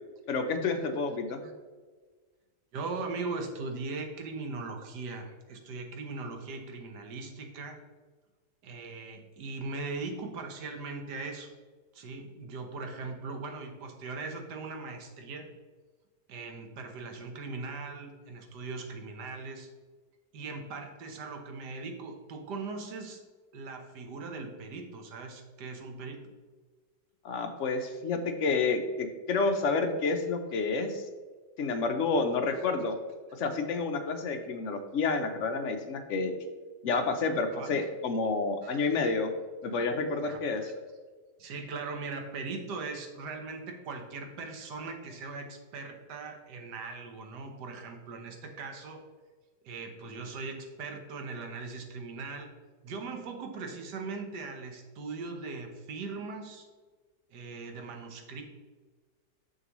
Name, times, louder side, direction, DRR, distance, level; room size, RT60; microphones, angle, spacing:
voice 1, 0.3-1.4 27.2-31.1 31.6-33.0 33.4-36.3 36.8-39.3 39.6-40.6, left 4 dB, 60° left, 6 dB, 0.8 m, -29 dB
voice 2, 2.7-7.8 8.6-11.5 11.9-15.5 16.3-19.7 20.3-23.2 23.5-26.2 32.5-32.7 37.5-37.9 38.6-39.0 40.1-40.7 41.4-49.0 49.6-52.5 52.8-56.7 57.3-58.4, right 3 dB, 75° right, 3 dB, 1.5 m, -40 dB
6.7 x 6.5 x 3.0 m, 1.4 s
omnidirectional pair, 1.8 m